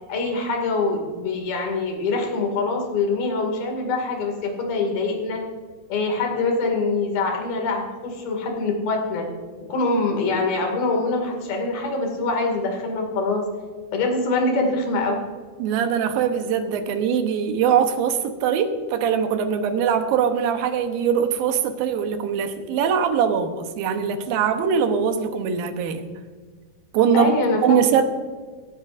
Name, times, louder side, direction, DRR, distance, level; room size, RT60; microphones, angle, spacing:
voice 1, 0.1-5.4 5.9-9.3 9.7-13.5 13.9-15.2 27.1-27.8, left 3 dB, 70° left, 3 dB, 4.1 m, -24 dB
voice 2, 15.6-26.1 26.9-27.3 27.6-28.0, right 7 dB, 75° right, 7 dB, 2.7 m, -22 dB
17.5 x 13.0 x 2.6 m, 1.5 s
omnidirectional pair, 4.4 m